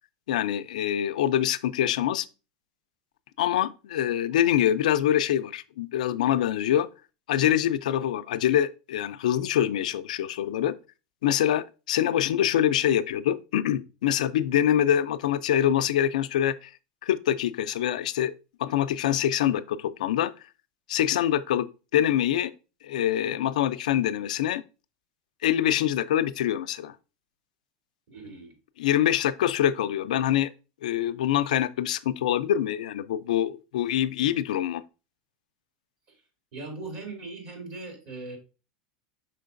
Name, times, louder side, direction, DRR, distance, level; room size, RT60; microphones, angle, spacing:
voice 1, 0.3-2.3 3.4-6.9 7.3-10.7 11.2-16.7 17.0-18.3 18.6-20.3 20.9-22.5 22.8-24.6 25.4-26.9 28.8-30.5 30.8-34.8, left 11 dB, 90° left, 0.3 m, -25 dB
voice 2, 28.1-28.6 36.1-36.2 36.5-38.4, right 3 dB, 60° right, 2.6 m, -39 dB
5.6 x 3.8 x 2.5 m
supercardioid pair, 125°, 4 cm